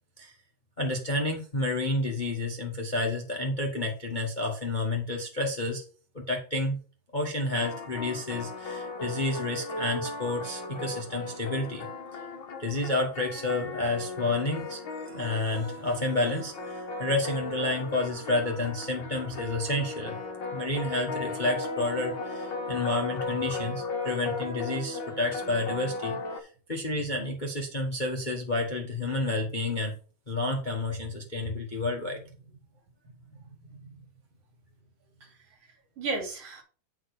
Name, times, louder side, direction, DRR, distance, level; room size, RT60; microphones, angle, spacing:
voice 1, 0.8-5.8 6.1-6.8 7.1-11.9 12.6-14.8 15.1-20.2 20.5-29.9 30.3-32.2, left 2 dB, 75° left, 1 dB, 0.4 m, -30 dB
sound 1, 7.6-26.4, left 3 dB, 55° left, 1.4 m, -36 dB
voice 2, 31.8-32.1 33.0-34.1 35.2-35.3 35.6-36.6, right 3 dB, 50° right, 1 dB, 3.8 m, -38 dB
8.3 x 5.7 x 4.8 m, 0.38 s
omnidirectional pair, 3.5 m